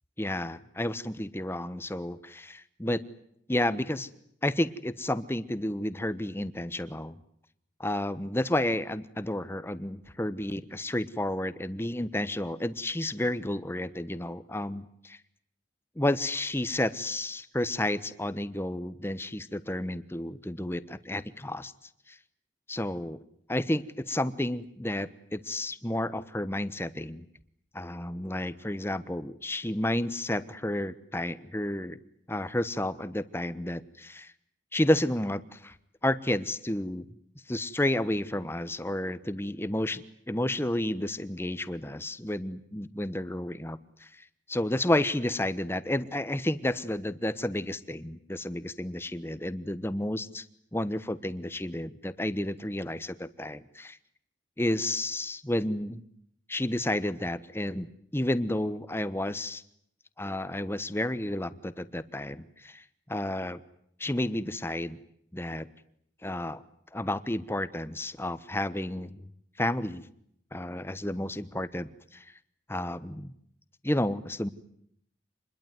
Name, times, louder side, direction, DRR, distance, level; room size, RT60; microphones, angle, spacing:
voice 1, 0.2-3.0 3.5-4.1 4.4-7.1 7.8-15.2 16.0-21.7 22.7-23.2 23.5-27.2 27.7-32.0 32.3-34.3 34.7-35.7 36.0-37.1 37.5-44.1 44.5-50.4 50.7-54.0 54.6-56.0 56.5-59.6 60.2-62.8 63.1-63.6 64.0-65.0 65.3-65.7 66.2-66.6 66.9-69.3 69.6-70.1 70.5-72.2 72.7-73.3 73.8-74.5, left 1 dB, 15° left, 14 dB, 1.1 m, -31 dB
27.0 x 21.5 x 9.5 m, 0.71 s
head